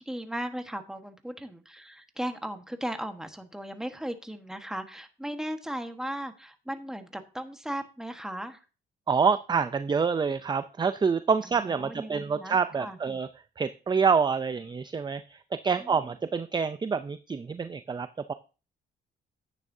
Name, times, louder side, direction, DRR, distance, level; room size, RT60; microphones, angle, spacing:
voice 1, 0.0-8.6 11.4-13.0 15.8-16.1, right 1 dB, 5° right, 6 dB, 1.3 m, -37 dB
voice 2, 9.1-13.3 13.6-18.3, right 5 dB, 20° right, 11 dB, 0.5 m, -27 dB
10.5 x 9.1 x 2.7 m, 0.34 s
cardioid pair, 90°, 20 cm